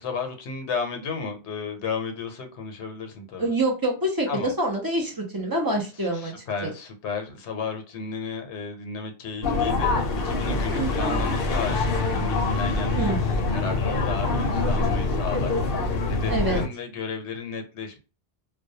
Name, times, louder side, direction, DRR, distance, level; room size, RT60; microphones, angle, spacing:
voice 1, 0.0-3.5 4.3-4.5 5.9-12.9 13.2-18.0, left 5 dB, 90° left, 4 dB, 0.9 m, -33 dB
voice 2, 3.4-6.7 10.7-11.3 13.0-13.2 16.3-16.6, right 1 dB, 30° right, 0 dB, 0.5 m, -26 dB
sound 1, 9.4-16.7, left 3 dB, 65° left, 0.7 m, -25 dB
2.2 x 2.2 x 2.6 m, 0.32 s
omnidirectional pair, 1.1 m